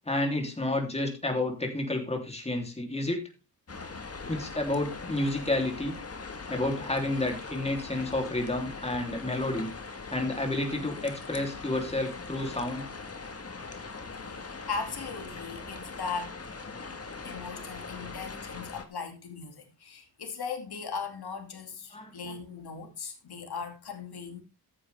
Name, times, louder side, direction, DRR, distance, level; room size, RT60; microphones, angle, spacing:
voice 1, 0.1-3.2 4.3-5.9 6.5-9.7 10.1-12.9 21.9-22.3, left 2 dB, 15° left, 3.3 m, -30 dB
sound 1, 3.7-18.8, left 4 dB, 40° left, 1.7 m, -41 dB
voice 2, 14.2-16.4 17.2-24.4, left 5 dB, 80° left, 2.6 m, -38 dB
14.0 x 9.6 x 3.5 m
wide cardioid pair, 135°, 38 cm